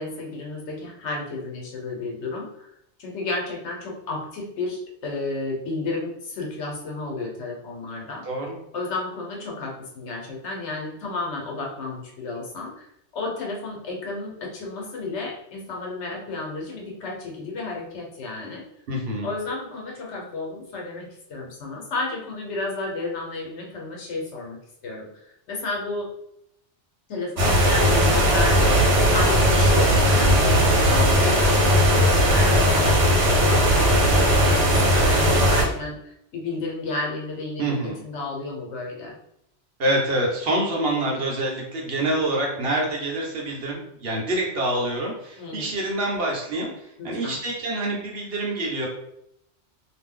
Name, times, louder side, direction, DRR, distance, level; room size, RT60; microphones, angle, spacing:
voice 1, 0.0-2.7 3.0-8.2 8.7-12.9 13.1-18.6 19.2-26.1 27.1-28.6 29.1-39.1 45.4-45.7 47.0-47.4, left 3 dB, 80° left, -1 dB, 1.1 m, -32 dB
voice 2, 18.9-19.3 37.6-38.0 39.8-46.7 47.0-48.9, right 1 dB, 60° right, -1 dB, 0.9 m, -26 dB
sound 1, 27.4-35.6, equal, 80° right, 1.1 m, -18 dB
2.5 x 2.1 x 3.6 m, 0.76 s
omnidirectional pair, 1.2 m